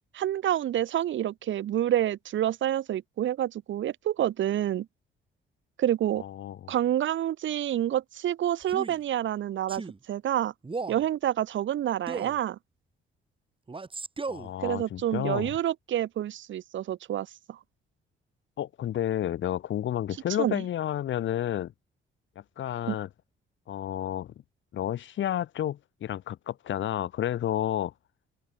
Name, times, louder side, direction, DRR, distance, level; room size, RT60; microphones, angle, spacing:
voice 1, 0.1-4.9 5.8-6.2 6.7-9.8 10.1-10.5 10.9-12.6 14.6-17.6 20.4-20.6 22.9-23.0, right 11 dB, 75° right, 3.8 m, -28 dB
voice 2, 6.2-6.7 14.3-15.6 18.6-21.7 22.6-23.1 23.7-24.3 24.7-27.9, left 11 dB, 70° left, 7.6 m, -31 dB
Male speech man speaking, 8.6-9.0 9.7-10.0 10.6-11.0 12.1-12.4 13.7-14.5, right 4 dB, 25° right, 6.1 m, -36 dB
cardioid pair, 90°, 20 cm